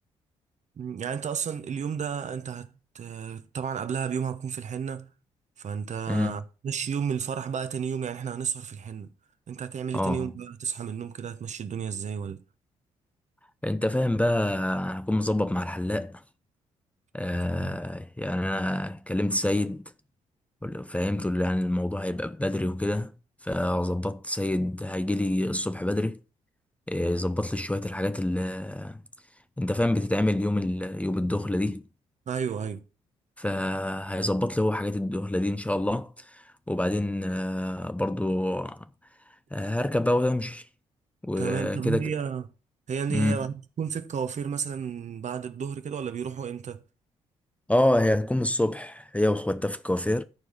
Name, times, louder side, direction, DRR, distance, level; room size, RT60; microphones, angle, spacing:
voice 1, 0.8-2.7 2.9-5.1 5.6-9.1 9.5-12.4 17.5-17.8 32.3-32.8 41.4-42.4 42.9-46.8, right 7 dB, 50° right, 1.0 m, -32 dB
voice 2, 6.1-6.4 9.9-10.3 13.6-16.2 17.1-19.8 20.6-23.1 23.4-26.2 26.9-29.0 29.6-31.8 33.4-38.9 39.5-40.7 41.2-42.1 43.1-43.4 47.7-50.2, left 1 dB, 10° left, 0.6 m, -27 dB
12.5 x 4.7 x 5.5 m
hypercardioid pair, 45°, 16 cm